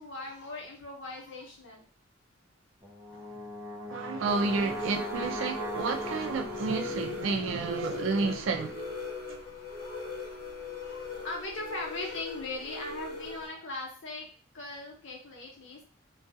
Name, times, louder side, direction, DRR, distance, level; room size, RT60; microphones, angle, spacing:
voice 1, 0.0-1.9 3.0-3.3 6.4-6.6 7.4-7.7 9.0-9.1 9.7-10.3 10.7-14.3 14.5-15.8, left 2 dB, 70° left, 0.9 m, -40 dB
Brass instrument, 2.8-7.1, left 1 dB, 15° right, 0.6 m, -38 dB
voice 2, 3.9-9.0 9.3-9.4, right 4 dB, 75° right, 0.4 m, -31 dB
sound 1, 4.2-13.5, left 3 dB, 35° left, 0.9 m, -40 dB
2.3 x 2.3 x 2.6 m
head